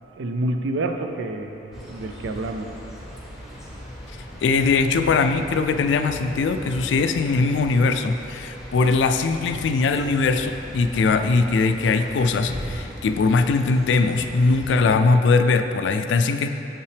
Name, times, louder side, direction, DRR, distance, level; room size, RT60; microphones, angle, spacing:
voice 1, 0.1-2.8, right 2 dB, 85° right, 6 dB, 0.4 m, -28 dB
sound 1, 1.7-14.8, equal, ahead, 1.0 m, -39 dB
voice 2, 4.4-16.5, left 4 dB, 75° left, 8 dB, 0.3 m, -21 dB
sound 2, 6.0-11.0 11.4-12.9, right 1 dB, 40° right, 1.0 m, -46 dB
7.4 x 5.5 x 3.4 m, 3.0 s
head